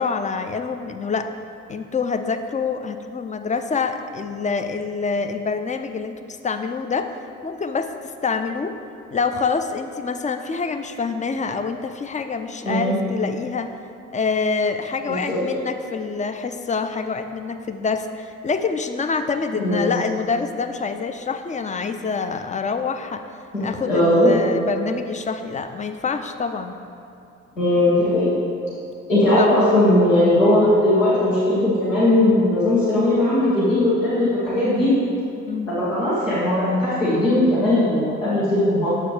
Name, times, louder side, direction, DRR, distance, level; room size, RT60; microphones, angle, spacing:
voice 1, 0.0-1.3 1.7-6.1 6.4-7.2 7.4-7.9 8.2-8.7 9.1-13.7 14.1-23.3 23.6-26.8 29.4-29.8 30.6-30.8 35.5-35.7, left 5 dB, 20° left, 8 dB, 0.5 m, -26 dB
voice 2, 12.6-13.0 15.1-15.4 19.6-19.9 23.8-24.3 27.6-28.3 29.1-34.9 35.7-38.9, left 1 dB, 85° left, -11 dB, 1.6 m, -18 dB
9.0 x 7.5 x 3.3 m, 2.6 s
figure-of-eight pair, 40°, 38 cm